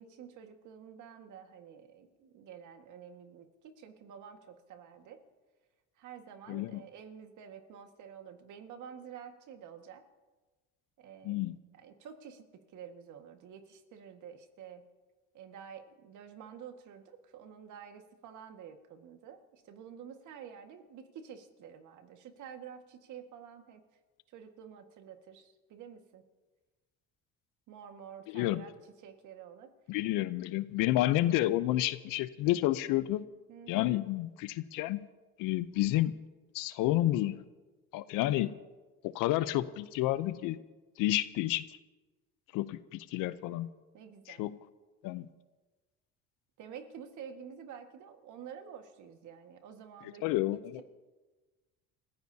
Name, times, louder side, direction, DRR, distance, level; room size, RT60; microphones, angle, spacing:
voice 1, 0.0-5.2 6.0-10.0 11.0-11.4 11.7-14.8 15.3-23.8 24.3-26.2 27.7-28.7 29.0-29.7 33.5-33.9 43.9-44.5 46.6-50.8, right 8 dB, 60° right, 6 dB, 1.8 m, -49 dB
voice 2, 6.5-6.8 11.2-11.6 28.3-28.6 29.9-33.2 33.7-35.0 35.4-36.1 36.5-37.4 37.9-38.5 39.0-40.6 41.0-41.6 42.5-43.7 44.3-44.6 45.0-45.3 50.2-50.8, left 15 dB, 70° left, 15 dB, 0.7 m, -30 dB
28.5 x 15.5 x 2.8 m, 1.3 s
supercardioid pair, 90°, 33 cm